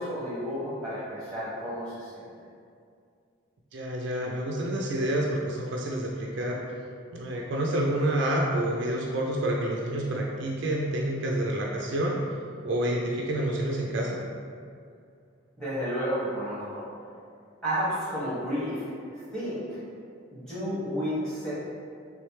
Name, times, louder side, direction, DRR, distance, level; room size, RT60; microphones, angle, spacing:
voice 1, 0.0-2.2 15.6-16.9 17.6-19.8 20.3-21.5, equal, 5° left, -11 dB, 1.3 m, -32 dB
voice 2, 3.7-6.6 7.1-12.2 12.6-14.2, right 1 dB, 55° right, -2 dB, 0.4 m, -28 dB
3.4 x 3.2 x 3.1 m, 2.3 s
head